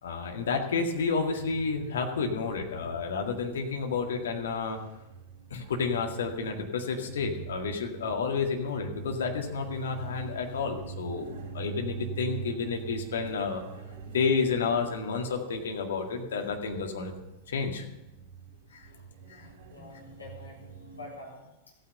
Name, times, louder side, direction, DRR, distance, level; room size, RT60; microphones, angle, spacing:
voice 1, 0.0-4.8 5.5-13.6 14.1-17.1 17.5-17.9 18.7-18.9 19.3-19.5, left 5 dB, 65° left, 3 dB, 2.0 m, -30 dB
sound 1, 1.3-21.1, right 5 dB, 45° right, 3.1 m, -45 dB
voice 2, 19.7-21.8, left 2 dB, 80° left, -2 dB, 3.8 m, -47 dB
15.0 x 9.4 x 6.6 m, 0.97 s
figure-of-eight pair, 90°, 0 cm